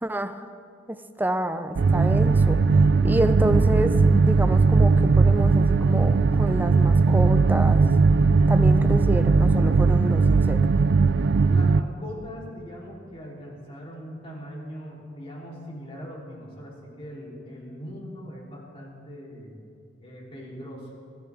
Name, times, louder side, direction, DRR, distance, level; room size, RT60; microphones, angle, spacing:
voice 1, 0.0-0.5 0.9-2.6 3.0-7.8 8.5-10.6, right 1 dB, 10° right, 10 dB, 0.5 m, -28 dB
sound 1, 1.8-11.8, right 4 dB, 65° right, 0.4 m, -19 dB
voice 2, 11.5-19.6 20.0-20.9, equal, 30° left, -3 dB, 3.5 m, -40 dB
24.5 x 13.5 x 3.6 m, 2.4 s
head